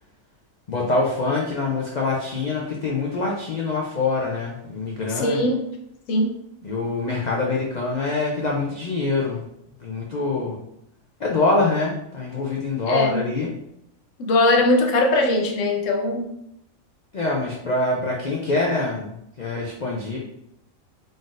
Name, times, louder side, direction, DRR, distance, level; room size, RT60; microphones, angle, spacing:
voice 1, 0.7-5.4 6.6-9.4 9.8-10.6 11.2-13.5 17.1-20.2, left 3 dB, 90° left, -2 dB, 0.3 m, -25 dB
voice 2, 5.2-5.6 6.1-6.4 12.9-13.2 14.3-16.3, left 2 dB, 65° left, 3 dB, 0.9 m, -20 dB
3.9 x 3.8 x 2.5 m, 0.78 s
omnidirectional pair, 1.5 m